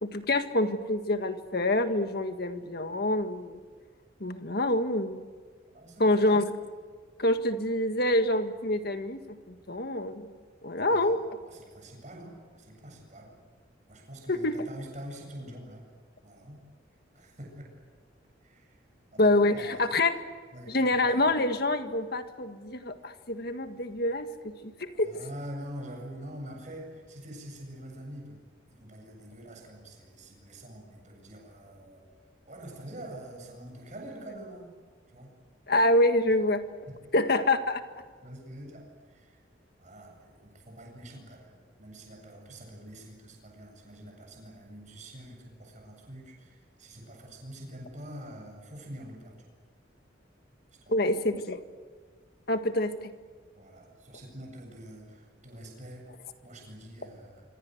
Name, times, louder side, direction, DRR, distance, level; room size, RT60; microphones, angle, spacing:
voice 1, 0.0-3.6 4.2-5.3 6.0-6.5 7.2-10.3 10.6-11.2 14.3-14.5 19.2-20.2 20.7-25.1 35.7-36.6 37.1-37.8 50.9-51.6 52.5-53.1, left 1 dB, 55° left, 8 dB, 1.8 m, -26 dB
voice 2, 5.7-6.1 10.8-11.1 11.5-13.4 13.9-15.9 16.2-16.6 17.1-17.7 18.4-18.8 19.1-20.0 20.5-21.1 24.9-28.4 28.7-32.0 32.4-34.7 35.1-35.4 36.9-37.0 38.2-39.4 39.8-49.4 50.7-51.1 53.6-56.1 56.4-57.4, right 1 dB, 40° right, 1 dB, 7.9 m, -45 dB
26.0 x 25.5 x 8.0 m, 1.5 s
head